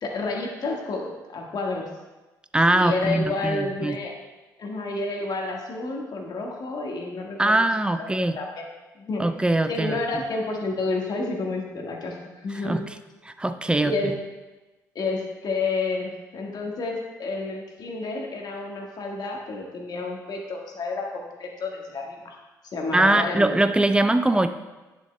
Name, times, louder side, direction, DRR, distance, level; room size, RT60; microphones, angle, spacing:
voice 1, 0.0-1.9 2.7-4.1 4.6-7.6 8.0-8.1 8.4-8.5 9.0-9.2 9.7-12.8 13.8-14.1 14.9-22.4 22.6-23.6, left 3 dB, 50° left, 0 dB, 1.5 m, -30 dB
voice 2, 2.5-4.0 7.4-8.4 9.2-10.0 12.6-12.8 13.3-14.1 22.9-24.5, right 2 dB, 10° right, 9 dB, 0.5 m, -22 dB
10.5 x 6.9 x 2.2 m, 1.1 s
hypercardioid pair, 50°, 9 cm